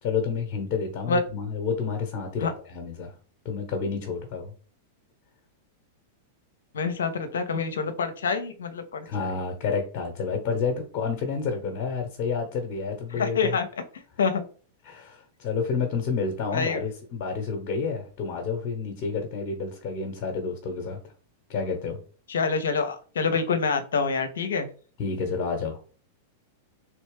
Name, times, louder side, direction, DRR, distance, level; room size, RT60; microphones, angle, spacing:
voice 1, 0.0-3.1 3.4-4.5 9.0-13.5 14.8-21.0 21.5-22.0 25.0-25.8, left 5 dB, 45° left, 2 dB, 1.0 m, -29 dB
voice 2, 6.7-9.3 13.1-13.7 14.2-14.4 16.5-16.8 22.3-24.7, left 5 dB, 70° left, 9 dB, 0.7 m, -26 dB
3.3 x 3.0 x 3.3 m, 0.39 s
figure-of-eight pair, 95°, 0 cm